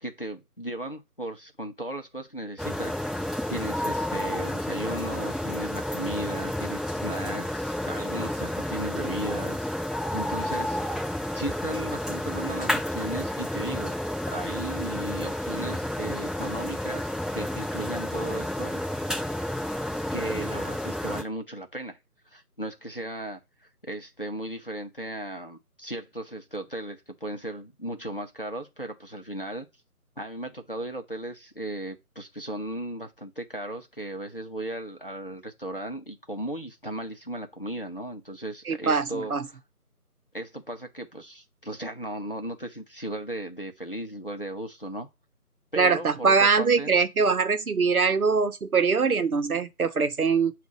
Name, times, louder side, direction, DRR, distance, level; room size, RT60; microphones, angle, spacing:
voice 1, 0.0-3.0 3.5-9.7 10.1-10.8 11.3-13.9 14.3-18.8 20.1-22.0 22.3-23.4 23.9-29.7 30.2-39.6 40.3-45.1 45.7-46.9, right 1 dB, 35° left, 0.7 m, -36 dB
sound 1, 2.6-21.2, left 1 dB, ahead, 0.5 m, -31 dB
voice 2, 38.7-39.5 45.8-50.5, right 5 dB, 65° right, 0.8 m, -23 dB
7.1 x 2.5 x 5.3 m
figure-of-eight pair, 175°, 46 cm